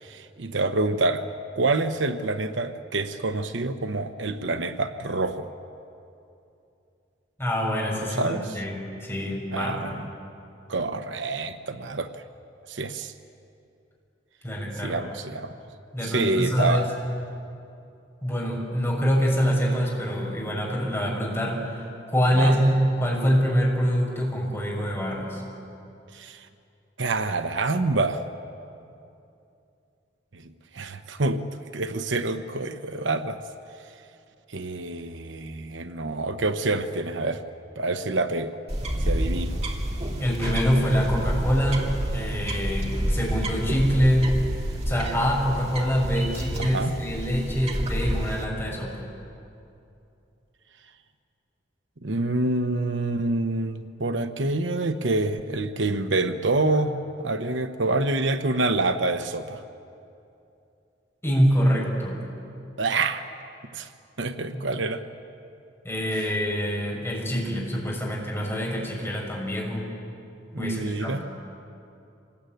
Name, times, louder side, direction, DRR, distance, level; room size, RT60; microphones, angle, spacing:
voice 1, 0.0-1.2 1.5-5.5 8.2-8.6 9.5-10.0 10.7-12.2 12.7-13.1 14.8-15.6 16.0-16.9 22.3-22.6 26.1-26.5 27.0-28.3 30.3-31.4 31.7-33.4 34.5-37.4 37.8-38.5 39.0-39.6 46.6-46.9 52.0-59.6 62.8-63.2 63.7-63.9 64.2-65.0 70.5-71.2, right 2 dB, 75° right, 9 dB, 1.0 m, -27 dB
voice 2, 7.4-10.0 14.4-15.0 15.9-16.9 18.2-25.4 40.2-44.3 44.8-48.9 61.2-62.2 64.5-64.6 65.8-69.8 70.6-71.2, equal, 15° left, -3 dB, 6.6 m, -25 dB
sound 1, 38.7-48.5, equal, 35° right, 2.8 m, -29 dB
26.0 x 20.5 x 9.3 m, 2.7 s
head